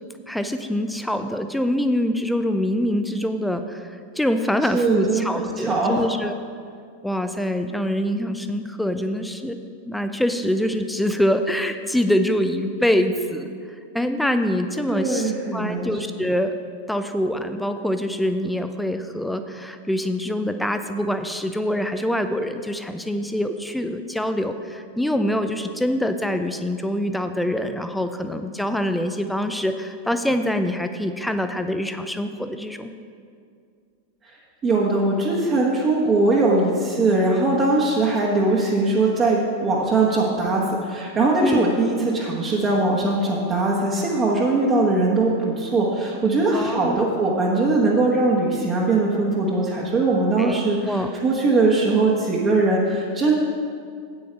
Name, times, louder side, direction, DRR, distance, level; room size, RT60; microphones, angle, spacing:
voice 1, 0.3-3.9 4.2-6.3 7.0-9.6 9.9-13.5 13.9-16.5 16.9-32.9 41.4-41.6 46.5-47.0 50.4-50.6 50.9-51.1, left 1 dB, 5° left, 8 dB, 0.5 m, -24 dB
voice 2, 4.7-6.1 14.9-15.9 34.6-53.3, right 2 dB, 25° right, -4 dB, 1.3 m, -21 dB
9.0 x 8.5 x 4.5 m, 2.2 s
figure-of-eight pair, 90°, 0 cm